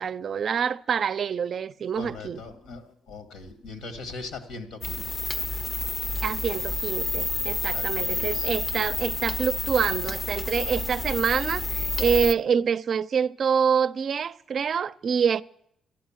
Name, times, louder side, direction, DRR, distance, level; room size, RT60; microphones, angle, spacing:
voice 1, 0.0-2.4 6.2-15.4, right 7 dB, 55° right, 0.4 m, -26 dB
voice 2, 1.9-5.0 7.6-8.5, left 3 dB, 80° left, 2.1 m, -40 dB
sound 1, 4.8-12.3, left 2 dB, 30° left, 0.7 m, -29 dB
13.0 x 11.0 x 7.4 m
cardioid pair, 90°, 0 cm